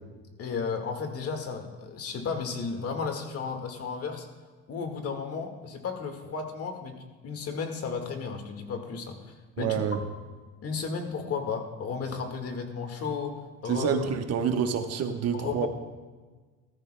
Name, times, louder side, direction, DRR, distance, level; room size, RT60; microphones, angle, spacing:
voice 1, 0.4-4.3 4.7-6.9 7.2-9.8 10.6-13.4 13.6-13.9 15.3-15.7, left 5 dB, 50° left, 4 dB, 1.8 m, -33 dB
voice 2, 9.6-10.0 13.6-15.7, right 7 dB, 55° right, 6 dB, 1.2 m, -27 dB
16.5 x 13.5 x 2.2 m, 1.4 s
cardioid pair, 100°, 30 cm